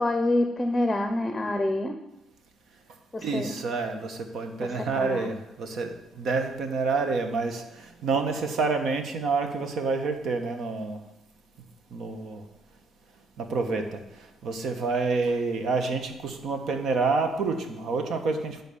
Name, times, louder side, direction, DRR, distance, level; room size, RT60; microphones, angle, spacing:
voice 1, 0.0-2.0 3.1-3.5 4.6-5.3, left 1 dB, 20° left, 7 dB, 0.7 m, -27 dB
voice 2, 3.2-5.9 6.2-7.6 8.0-11.0 11.9-12.4 13.4-13.8 14.4-18.6, right 4 dB, 70° right, 6 dB, 1.1 m, -28 dB
10.0 x 4.0 x 7.0 m, 0.91 s
cardioid pair, 90°, 0 cm